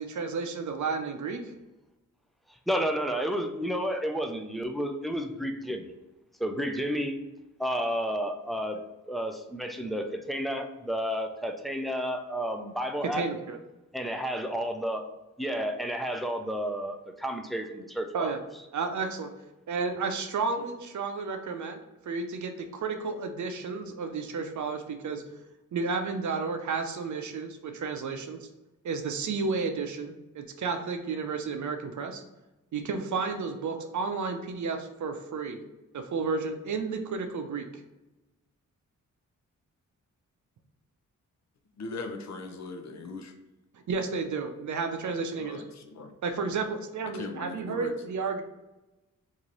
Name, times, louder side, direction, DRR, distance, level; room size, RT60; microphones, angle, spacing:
voice 1, 0.0-1.5 8.7-8.8 13.1-13.6 18.1-18.4 18.7-19.3 19.7-21.8 22.1-25.2 25.7-28.5 28.8-32.2 32.7-35.6 35.9-37.7 43.7-45.6 46.2-48.4, right 4 dB, 60° right, 6 dB, 0.6 m, -32 dB
voice 2, 2.7-5.8 6.4-7.2 7.6-8.8 9.1-13.3 13.9-15.0 15.4-18.3, equal, ahead, 4 dB, 0.4 m, -31 dB
voice 3, 41.8-43.3 45.4-46.1 47.1-47.9, left 3 dB, 55° left, 5 dB, 0.6 m, -39 dB
3.0 x 2.6 x 3.9 m, 1.0 s
cardioid pair, 70°, 33 cm